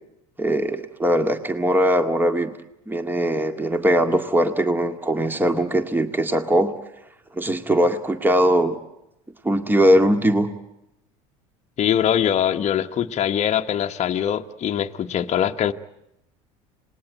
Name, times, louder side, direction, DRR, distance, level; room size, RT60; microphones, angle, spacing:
voice 1, 0.4-2.5 2.9-6.7 7.3-8.8 9.4-10.5, equal, 10° right, 2.0 m, -20 dB
voice 2, 11.8-15.7, left 9 dB, 40° left, 1.2 m, -22 dB
27.0 x 19.5 x 9.3 m
hypercardioid pair, 85°, 18 cm